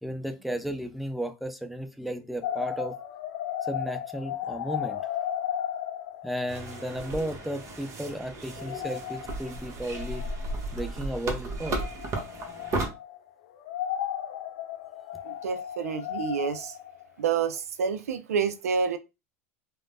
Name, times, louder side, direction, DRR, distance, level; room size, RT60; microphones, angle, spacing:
voice 1, 0.0-3.0 3.6-5.1 6.2-10.2 10.7-11.8, equal, ahead, 0.4 m, -34 dB
sound 1, 2.4-7.8 8.1-8.2 8.5-10.8 11.6-13.3 13.6-17.6, left 10 dB, 65° left, 0.4 m, -35 dB
sound 2, 6.5-12.9, right 2 dB, 40° right, 0.9 m, -35 dB
voice 2, 15.3-16.7 17.2-19.0, right 6 dB, 80° right, 0.4 m, -28 dB
3.1 x 2.0 x 2.5 m
hypercardioid pair, 85°, 8 cm